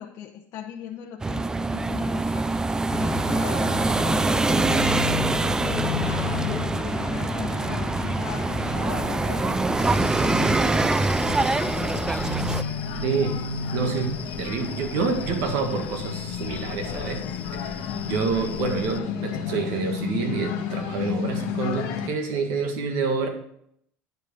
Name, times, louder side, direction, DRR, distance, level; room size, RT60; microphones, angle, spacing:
voice 1, 0.0-2.5 3.0-4.8 5.6-7.1 7.4-9.4 10.0-12.1 17.9-18.3, left 9 dB, 60° left, 0 dB, 0.9 m, -39 dB
sound 1, 1.2-12.6, right 3 dB, 10° right, 0.3 m, -24 dB
sound 2, 2.9-22.1, left 7 dB, 85° left, 1.4 m, -32 dB
sound 3, 9.8-19.0, left 6 dB, 30° left, 0.6 m, -41 dB
voice 2, 13.0-13.4 13.7-17.3 17.5-17.8 18.0-23.3, right 5 dB, 75° right, 5 dB, 1.7 m, -28 dB
10.0 x 4.9 x 5.2 m, 0.70 s
cardioid pair, 120°, 5 cm